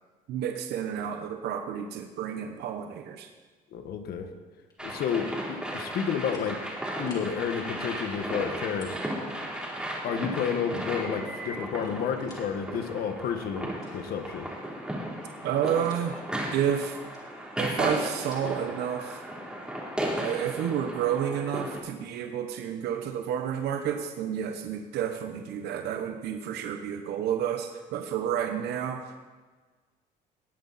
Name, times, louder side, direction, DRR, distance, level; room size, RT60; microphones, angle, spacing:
voice 1, 0.3-3.3 15.4-16.3 16.5-17.0 17.6-19.2 20.2-29.2, right 9 dB, 75° right, 5 dB, 1.0 m, -30 dB
voice 2, 3.7-4.3 4.8-6.6 7.0-9.0 10.0-14.5, left 7 dB, 65° left, 6 dB, 1.5 m, -31 dB
sound 1, 4.6-5.2 5.7-5.8 6.2-6.6 6.9-7.4 8.7-9.1 9.5-9.6 10.7-12.5 12.9-13.0 13.7-14.6 15.0-16.3 17.0-18.6, left 2 dB, 25° left, 4.2 m, -54 dB
sound 2, 4.8-21.8, right 1 dB, 5° right, 3.2 m, -35 dB
19.5 x 8.3 x 4.2 m, 1.4 s
cardioid pair, 110°, 17 cm